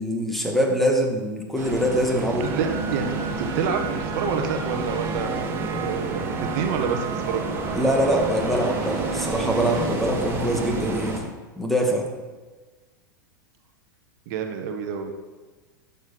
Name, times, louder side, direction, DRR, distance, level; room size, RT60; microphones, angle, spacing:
voice 1, 0.0-2.5 7.7-11.2 11.6-12.1, equal, ahead, 1 dB, 2.2 m, -23 dB
sound 1, 1.6-11.2, right 2 dB, 20° right, 2.4 m, -31 dB
sound 2, 2.4-10.0, right 6 dB, 40° right, 1.1 m, -32 dB
voice 2, 2.4-7.4 14.3-15.2, right 6 dB, 55° right, 5 dB, 1.3 m, -28 dB
11.5 x 7.1 x 6.0 m, 1.4 s
hypercardioid pair, 95°, 11 cm